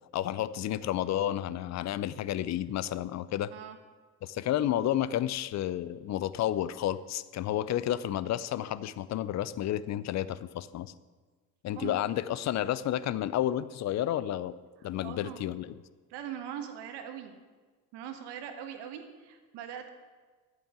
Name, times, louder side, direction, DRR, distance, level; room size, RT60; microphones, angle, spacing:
voice 1, 0.1-3.5 4.2-10.9 11.6-14.5 14.8-15.7, left 12 dB, 35° left, 16 dB, 0.6 m, -31 dB
voice 2, 15.0-15.4 16.1-17.3 17.9-19.9, right 9 dB, 55° right, 6 dB, 1.5 m, -41 dB
11.0 x 8.7 x 7.0 m, 1.4 s
figure-of-eight pair, 55°, 49 cm